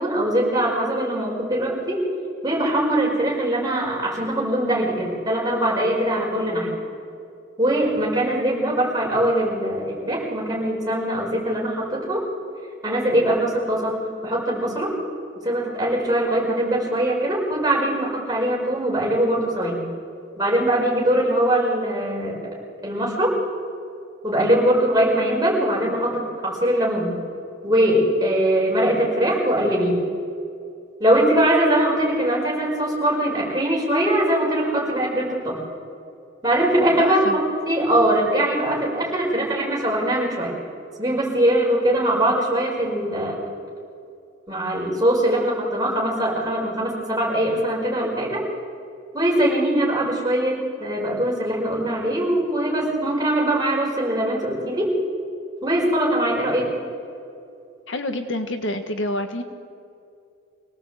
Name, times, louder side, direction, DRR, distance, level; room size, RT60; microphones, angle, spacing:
voice 1, 0.0-2.1 2.4-6.7 7.6-12.2 12.8-14.9 15.4-19.8 20.4-22.4 22.8-23.4 24.2-27.2 27.6-30.0 31.0-35.6 36.4-40.5 41.0-43.4 44.5-48.4 49.1-55.0 55.6-56.7, right 1 dB, 20° right, -4 dB, 5.6 m, -22 dB
voice 2, 37.0-37.4 57.9-59.4, left 1 dB, 70° left, 7 dB, 1.6 m, -27 dB
26.0 x 18.0 x 8.3 m, 2.5 s
head